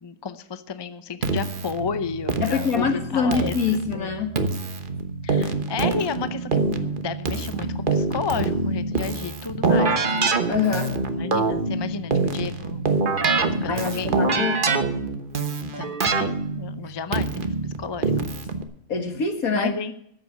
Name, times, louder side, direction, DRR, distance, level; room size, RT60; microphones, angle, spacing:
voice 1, 0.0-3.6 3.9-4.1 5.2-10.2 11.1-12.9 13.6-14.5 15.8-18.1 19.5-19.9, left 5 dB, 30° left, 12 dB, 0.5 m, -32 dB
Keyboard (musical), 1.2-18.6, right 3 dB, 40° right, 1.2 m, -25 dB
voice 2, 2.4-4.3 10.5-11.0 13.7-14.7 18.9-19.7, left 5 dB, 75° left, 6 dB, 2.2 m, -25 dB
14.0 x 7.8 x 8.5 m, 0.71 s
omnidirectional pair, 1.5 m